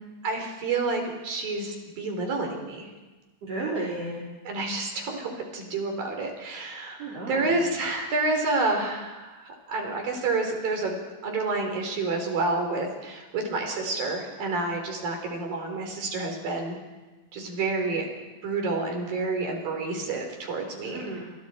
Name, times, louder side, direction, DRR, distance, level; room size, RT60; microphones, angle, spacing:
voice 1, 0.2-2.9 4.5-11.0 11.2-16.8 17.3-18.1 18.4-21.0, right 3 dB, 80° right, 2 dB, 5.9 m, -29 dB
voice 2, 3.4-4.2 7.0-7.7 20.8-21.2, right 2 dB, 45° right, -5 dB, 4.8 m, -33 dB
29.5 x 28.0 x 4.5 m, 1.2 s
omnidirectional pair, 4.0 m